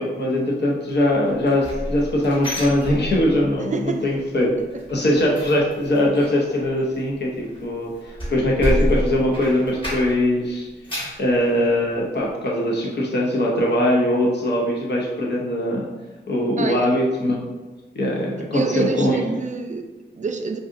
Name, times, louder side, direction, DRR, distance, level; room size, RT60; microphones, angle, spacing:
voice 1, 0.0-4.5 4.9-10.7 11.2-15.9 16.3-17.5 17.9-19.2, left 1 dB, 65° left, -3 dB, 0.7 m, -21 dB
sound 1, 1.3-3.6 3.9-4.2 4.5-10.3 10.6-11.3 11.7-11.8 12.3-12.4, equal, 25° left, 1.4 m, -29 dB
voice 2, 3.7-4.1 4.4-4.5 16.6-17.0 18.5-20.6, right 4 dB, 40° right, 6 dB, 0.4 m, -27 dB
4.8 x 2.6 x 2.5 m, 1.2 s
wide cardioid pair, 65°, 19 cm